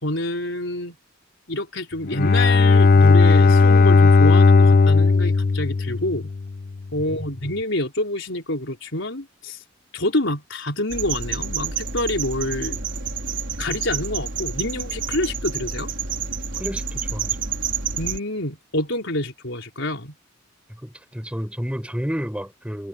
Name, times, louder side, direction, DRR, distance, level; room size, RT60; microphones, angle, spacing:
voice 1, 0.0-1.0 1.5-6.3 6.9-9.6 9.9-12.8 13.6-15.9 18.0-20.1, left 1 dB, 65° left, 5.0 m, -27 dB
Bowed string instrument, 2.0-6.6, left 4 dB, 45° left, 0.5 m, -15 dB
sound 1, 10.9-18.2, right 6 dB, 60° right, 4.9 m, -29 dB
voice 2, 16.6-17.4 20.8-22.9, equal, 5° right, 7.3 m, -30 dB
head